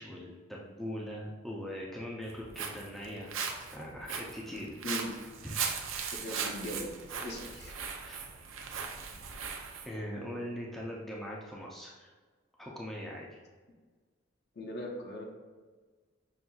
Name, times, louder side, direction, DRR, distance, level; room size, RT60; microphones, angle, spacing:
voice 1, 0.0-3.3 3.7-4.8 5.4-5.8 8.0-8.2 9.8-12.1 12.6-13.4, equal, ahead, -4 dB, 0.4 m, -41 dB
Walk footsteps, 2.2-9.9, right 6 dB, 90° right, 0.5 m, -38 dB
voice 2, 4.5-5.1 6.2-6.9 7.2-7.7 14.6-15.3, left 1 dB, 55° left, -1 dB, 0.7 m, -39 dB
5.7 x 2.6 x 2.3 m, 1.4 s
head